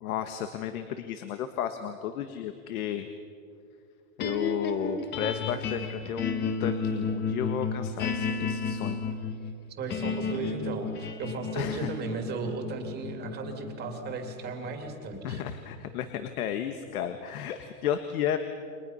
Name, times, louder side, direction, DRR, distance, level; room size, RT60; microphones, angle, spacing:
voice 1, 0.0-3.1 4.2-9.0 11.5-11.9 15.2-18.4, left 9 dB, 90° left, 8 dB, 1.7 m, -33 dB
sound 1, 4.2-16.5, left 5 dB, 25° left, 1.4 m, -33 dB
voice 2, 9.8-15.4, right 4 dB, 25° right, 4 dB, 2.3 m, -36 dB
29.5 x 24.5 x 5.7 m, 2.2 s
supercardioid pair, 175°, 43 cm